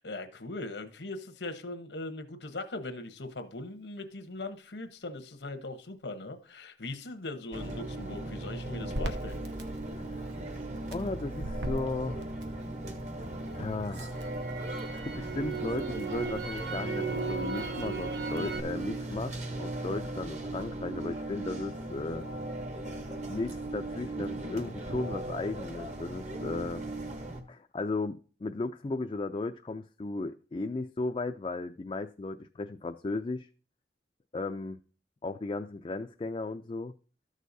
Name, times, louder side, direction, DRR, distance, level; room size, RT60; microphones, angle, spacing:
voice 1, 0.0-9.4, left 2 dB, 85° left, 1.0 m, -40 dB
sound 1, 7.5-27.4, right 2 dB, 40° right, 0.9 m, -38 dB
Crackle, 8.9-13.1 13.5-18.6, right 3 dB, 85° right, 1.0 m, -37 dB
voice 2, 9.9-10.4 10.9-12.2 13.5-14.2 14.7-22.3 23.3-26.8 27.5-33.5 34.3-34.8 35.2-36.9, left 3 dB, 30° left, 0.3 m, -35 dB
13.5 x 6.4 x 2.7 m
head